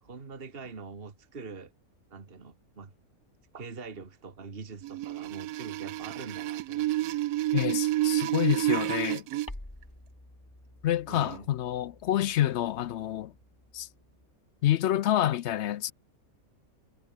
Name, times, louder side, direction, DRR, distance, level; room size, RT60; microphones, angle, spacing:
voice 1, 0.0-1.7 2.1-2.9 3.5-7.2 11.1-11.5, right 4 dB, 40° right, 2.0 m, -44 dB
sound 1, 4.8-9.5 11.1-11.4, right 16 dB, 90° right, 1.1 m, -29 dB
voice 2, 7.5-9.2 10.8-13.3 13.7-13.9 14.6-15.9, left 12 dB, 65° left, 0.7 m, -28 dB
sound 2, 9.5-14.3, left 1 dB, 15° left, 2.6 m, -50 dB
omnidirectional pair, 1.5 m